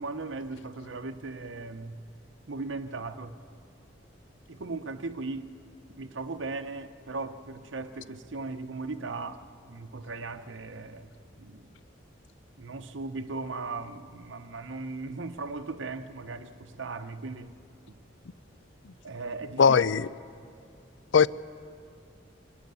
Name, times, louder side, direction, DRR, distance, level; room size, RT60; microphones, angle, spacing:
voice 1, 0.0-2.0 2.5-3.4 4.5-5.5 6.0-11.1 11.4-11.7 12.6-17.5 17.9-18.0 19.0-19.8, right 3 dB, 80° right, 0.8 m, -38 dB
voice 2, 19.6-20.1 21.1-21.3, left 6 dB, 75° left, 0.5 m, -19 dB
27.0 x 12.5 x 9.3 m
head